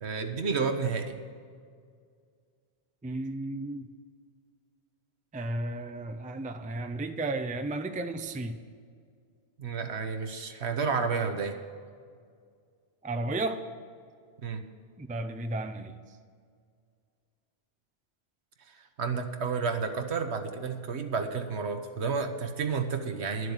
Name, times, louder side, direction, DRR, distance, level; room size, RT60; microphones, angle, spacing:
voice 1, 0.0-1.2 9.6-11.6 14.4-14.6 18.7-23.5, right 5 dB, 75° right, 1.3 m, -31 dB
voice 2, 3.0-3.9 5.3-8.6 13.0-13.7 15.0-16.0, right 2 dB, 10° right, 0.4 m, -33 dB
11.5 x 7.6 x 8.0 m
omnidirectional pair, 1.1 m